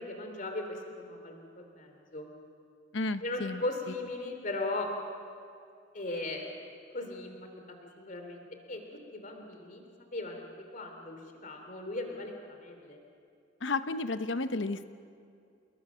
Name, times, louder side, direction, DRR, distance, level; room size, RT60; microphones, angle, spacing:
voice 1, 0.0-2.3 3.2-4.9 5.9-6.5 6.9-7.4 7.7-8.8 9.1-9.8 10.1-10.5 10.7-13.0, left 2 dB, 45° left, 4 dB, 3.2 m, -38 dB
voice 2, 2.9-3.6 13.6-14.9, left 3 dB, 75° left, 11 dB, 0.9 m, -32 dB
28.5 x 21.5 x 6.3 m, 2.4 s
head